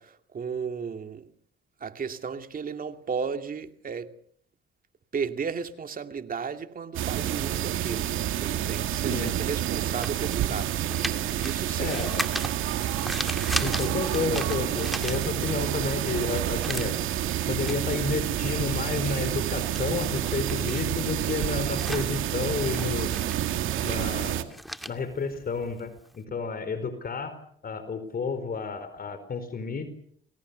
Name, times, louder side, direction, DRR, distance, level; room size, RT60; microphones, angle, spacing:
voice 1, 0.3-1.3 1.8-4.1 5.1-8.1 8.4-12.0, right 6 dB, 45° right, 2.5 m, -34 dB
sound 1, 6.9-24.4, right 11 dB, 85° right, 2.2 m, -29 dB
sound 2, 8.0-15.7 16.1-26.1, equal, ahead, 2.4 m, -38 dB
voice 2, 11.8-12.3 13.6-17.0 17.5-23.1 23.8-24.5 24.9-27.4 27.6-29.9, left 4 dB, 50° left, 4.5 m, -31 dB
29.0 x 22.0 x 7.0 m
cardioid pair, 90°, 20 cm